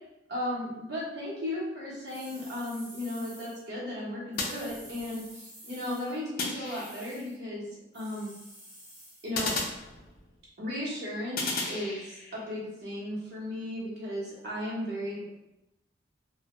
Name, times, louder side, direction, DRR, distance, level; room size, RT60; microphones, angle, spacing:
voice 1, 0.3-7.7 7.9-8.4 9.2-9.6 10.6-15.2, left 1 dB, 60° right, -6 dB, 0.9 m, -35 dB
sound 1, 2.1-3.6 4.3-6.2 6.6-7.4 7.9-9.3, equal, 5° right, 0.6 m, -50 dB
sound 2, 4.4-5.3 6.4-7.3 9.3-10.5 11.4-12.4, left 3 dB, 50° left, 0.4 m, -35 dB
2.1 x 2.1 x 2.9 m, 0.92 s
head